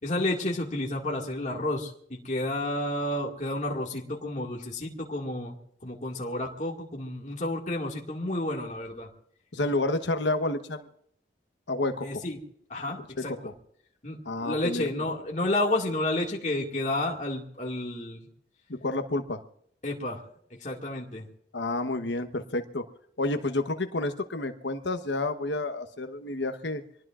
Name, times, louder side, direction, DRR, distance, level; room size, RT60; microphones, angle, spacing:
voice 1, 0.0-5.5 5.8-9.1 12.0-12.4 12.7-13.5 14.0-18.2 19.8-20.2 20.6-21.3, left 1 dB, 40° left, -1 dB, 2.1 m, -31 dB
voice 2, 9.5-10.9 11.7-12.2 12.8-13.5 14.2-14.9 18.7-19.4 21.5-22.8 23.2-26.8, left 2 dB, 75° left, 8 dB, 1.1 m, -30 dB
25.0 x 19.5 x 2.5 m, 0.69 s
head